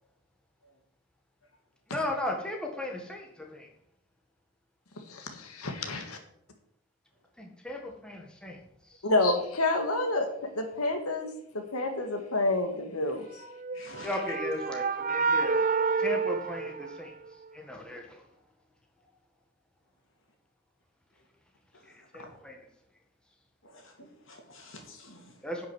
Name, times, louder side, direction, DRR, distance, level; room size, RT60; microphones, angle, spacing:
voice 1, 1.9-3.7 7.4-8.6 14.0-15.5 16.0-17.1 17.5-18.2 21.9-22.6 25.4-25.7, left 1 dB, 5° left, 1 dB, 1.6 m, -36 dB
voice 2, 5.1-6.2 9.0-13.5, left 2 dB, 90° left, 5 dB, 1.7 m, -29 dB
sound 1, 13.5-17.4, right 4 dB, 35° right, 0.6 m, -29 dB
voice 3, 13.7-14.3 21.7-22.4 23.6-25.4, left 2 dB, 60° left, 2 dB, 3.0 m, -48 dB
10.0 x 6.1 x 7.9 m, 0.72 s
head